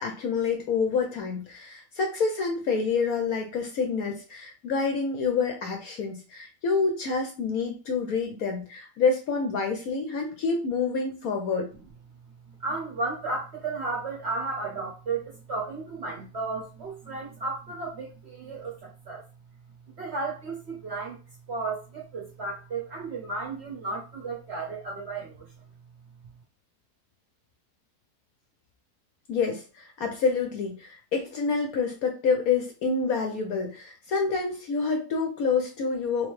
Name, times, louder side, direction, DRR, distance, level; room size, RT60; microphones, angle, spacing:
voice 1, 0.0-11.7 29.3-36.3, left 5 dB, 65° left, 3 dB, 0.9 m, -27 dB
voice 2, 12.5-19.2 20.0-21.2 21.5-25.5, right 3 dB, 50° right, -2 dB, 0.8 m, -34 dB
3.4 x 3.0 x 3.1 m, 0.33 s
omnidirectional pair, 2.0 m